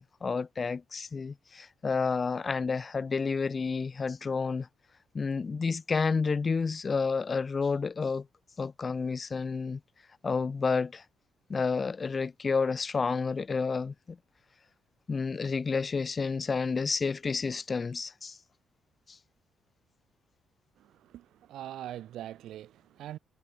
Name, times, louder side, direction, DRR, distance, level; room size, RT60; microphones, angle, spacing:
voice 1, 0.0-4.7 5.1-8.2 8.6-9.8 10.2-11.0 11.5-14.2 15.1-18.4, left 4 dB, 35° left, 0.5 m, -30 dB
voice 2, 20.8-23.2, right 12 dB, 80° right, 3.6 m, -43 dB
cardioid pair, 90°, 0 cm